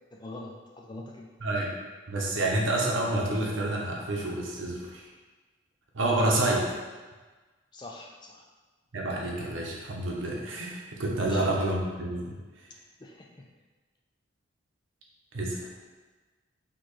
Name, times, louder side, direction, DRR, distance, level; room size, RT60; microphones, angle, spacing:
voice 1, 0.1-1.3 6.2-6.5 7.7-8.5 11.2-11.6 13.0-13.5, left 2 dB, 20° left, 0 dB, 0.3 m, -44 dB
voice 2, 1.4-1.7 2.1-5.1 5.9-6.6 8.9-12.4 15.3-15.7, right 2 dB, 70° right, -1 dB, 0.8 m, -28 dB
4.3 x 2.9 x 3.1 m, 1.3 s
head